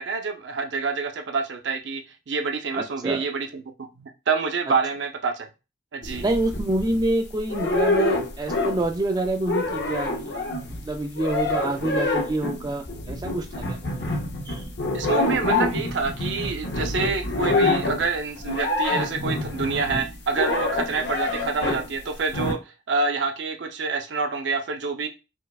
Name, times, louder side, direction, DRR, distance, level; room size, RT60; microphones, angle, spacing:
voice 1, 0.0-3.6 4.0-5.5 5.9-6.3 14.9-22.6 22.9-25.1, right 4 dB, 85° right, 5 dB, 0.6 m, -27 dB
voice 2, 2.7-3.2 6.2-10.4 10.8-14.1 14.5-14.6, right 1 dB, 20° right, 4 dB, 0.3 m, -27 dB
sound 1, 6.0-7.1 7.5-9.0 9.2-21.9 22.3-22.5, left 2 dB, 70° left, 0.6 m, -26 dB
4.4 x 2.1 x 2.3 m, 0.29 s
head